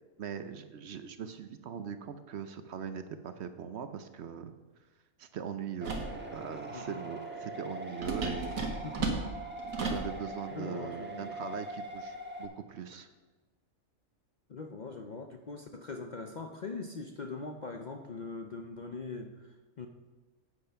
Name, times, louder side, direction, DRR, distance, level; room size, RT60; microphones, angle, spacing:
voice 1, 0.2-4.5 5.2-6.0 6.3-8.6 9.8-13.1, right 7 dB, 60° right, 10 dB, 0.8 m, -41 dB
sound 1, 5.8-12.5, right 1 dB, 10° right, 1.2 m, -42 dB
sound 2, 5.8-6.2 8.0-10.1, right 3 dB, 90° right, 1.9 m, -34 dB
voice 2, 6.7-7.0 8.2-8.3 8.8-9.3 10.5-11.3 12.9-13.0 14.5-19.9, left 4 dB, 50° left, 5 dB, 0.6 m, -42 dB
8.7 x 8.0 x 5.7 m, 1.3 s
omnidirectional pair, 1.4 m